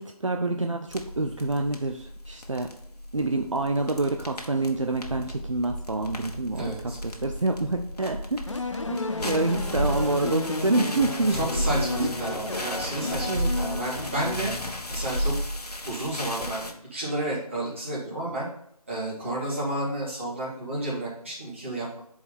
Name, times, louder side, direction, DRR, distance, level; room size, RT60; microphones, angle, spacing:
voice 1, 0.0-2.7 3.1-9.0 9.2-11.4 12.0-12.1 13.3-13.6, right 2 dB, 55° right, 4 dB, 0.6 m, -27 dB
sound 1, 0.9-16.7, equal, 80° left, 1.6 m, -34 dB
voice 2, 6.5-7.0 9.2-9.4 11.3-14.5 14.9-15.3 15.8-18.5 18.9-22.0, right 1 dB, 20° right, -8 dB, 2.2 m, -31 dB
sound 2, 8.5-15.1, left 2 dB, 50° left, 0.6 m, -33 dB
8.2 x 4.9 x 4.3 m, 0.72 s
figure-of-eight pair, 180°, 20 cm